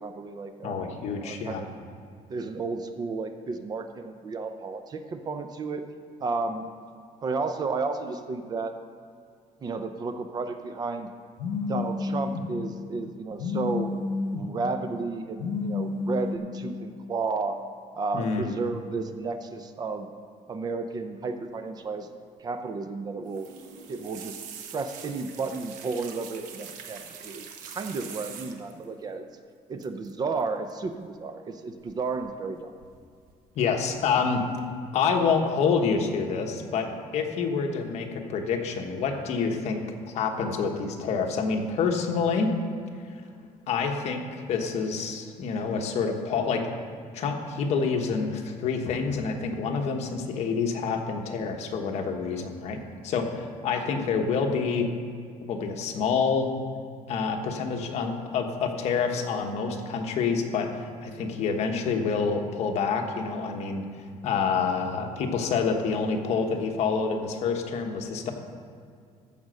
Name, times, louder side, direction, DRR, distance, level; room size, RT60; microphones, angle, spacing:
voice 1, 0.0-0.8 1.2-1.7 2.3-5.8 6.2-6.7 7.2-8.8 9.6-11.1 11.6-13.9 14.3-17.6 18.0-20.1 20.5-22.1 22.4-23.5 23.9-24.4 24.7-29.3 29.7-32.7, right 4 dB, 30° right, 8 dB, 0.6 m, -32 dB
voice 2, 0.6-1.6 18.1-18.4 33.5-34.5 34.9-39.8 40.1-42.5 43.7-44.2 44.5-46.7 47.1-52.8 53.0-54.9 55.4-56.5 57.1-60.7 61.0-63.9 64.2-68.3, left 5 dB, 55° left, 3 dB, 1.2 m, -27 dB
Telephone, 11.4-12.4 13.4-14.4 15.4-16.4, left 4 dB, 70° left, 0.9 m, -30 dB
sound 1, 23.3-28.8 29.8-30.1 30.4-30.7 31.9-32.5 32.8-33.4 33.8-34.2 34.6-34.7, right 7 dB, 80° right, 1.0 m, -44 dB
14.5 x 5.2 x 6.3 m, 2.2 s
cardioid pair, 165°, 13 cm